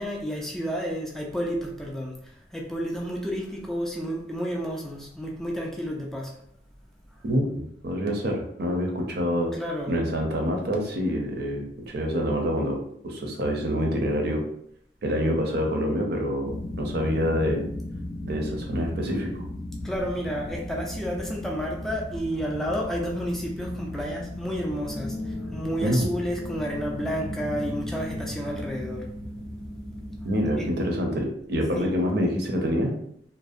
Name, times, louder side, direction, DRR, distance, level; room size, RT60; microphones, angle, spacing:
voice 1, 0.0-6.3 9.5-10.0 19.8-29.1 30.3-30.7 31.7-32.0, equal, ahead, -2 dB, 0.3 m, -31 dB
voice 2, 7.2-9.5 9.9-12.8 13.0-14.4 15.0-17.6 18.2-19.3 25.8-26.1 30.2-32.9, equal, 65° right, 1 dB, 0.5 m, -26 dB
sound 1, 16.4-30.9, left 1 dB, 55° left, 0.5 m, -36 dB
2.5 x 2.0 x 2.4 m, 0.71 s
head